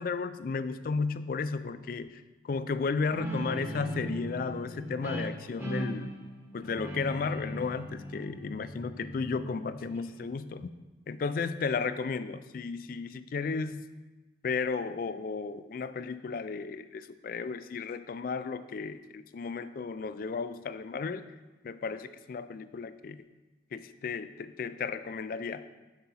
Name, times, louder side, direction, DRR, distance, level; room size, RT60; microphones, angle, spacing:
voice 1, 0.0-6.1 6.5-10.7 11.1-13.9 14.4-21.2 21.6-23.2 23.7-25.6, left 4 dB, 50° left, 13 dB, 0.3 m, -34 dB
Guitar, 3.1-10.3, equal, 15° right, 0.9 m, -39 dB
7.5 x 5.8 x 4.2 m, 1.2 s
head